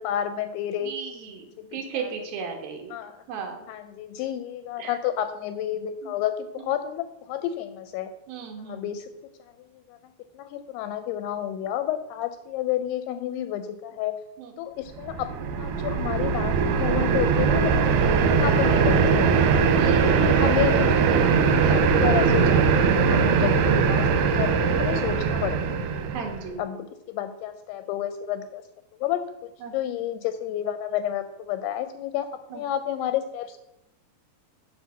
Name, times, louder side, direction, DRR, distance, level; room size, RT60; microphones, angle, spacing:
voice 1, 0.0-0.9 1.6-2.3 2.9-3.2 3.7-8.1 8.7-9.1 9.9-10.0 10.3-14.2 14.6-17.9 18.3-19.4 20.2-25.6 26.5-28.6 29.0-33.6, left 11 dB, 85° left, 10 dB, 2.4 m, -30 dB
voice 2, 0.9-2.9 3.3-3.7 4.8-5.0 6.0-6.1 8.3-8.9 14.4-14.5 19.8-20.4 21.6-21.8 26.1-26.7 29.6-29.7 32.5-32.6, right 6 dB, 65° right, 3 dB, 2.8 m, -36 dB
Spooky Hum, 15.0-26.4, right 5 dB, 90° right, 2.9 m, -21 dB
10.0 x 4.0 x 7.0 m, 0.88 s
omnidirectional pair, 4.8 m